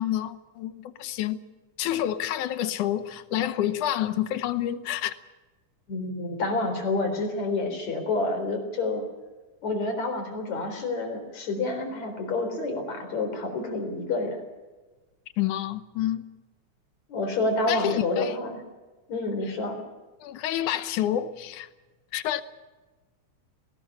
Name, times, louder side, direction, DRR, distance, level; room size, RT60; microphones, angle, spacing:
voice 1, 0.0-1.4 1.8-5.1 15.4-16.2 17.7-18.4 20.2-21.7 22.1-22.4, left 12 dB, 75° left, 2.4 m, -28 dB
voice 2, 5.9-9.0 9.6-14.4 17.1-18.6 19.1-19.8, left 2 dB, 60° left, 5.2 m, -28 dB
19.5 x 18.5 x 8.9 m
omnidirectional pair, 3.7 m